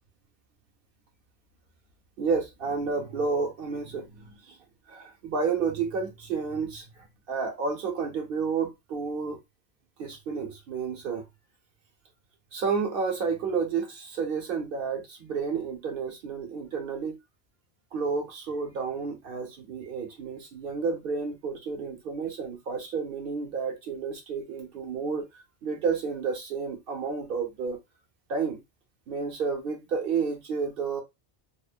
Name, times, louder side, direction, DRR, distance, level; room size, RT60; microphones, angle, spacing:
voice 1, 2.2-4.6 4.9-9.4 10.0-11.2 12.5-17.2 17.9-25.3 25.6-27.8 28.3-28.6 29.1-31.0, right 5 dB, 65° right, 0.9 m, -31 dB
2.9 x 2.0 x 2.4 m
omnidirectional pair, 1.0 m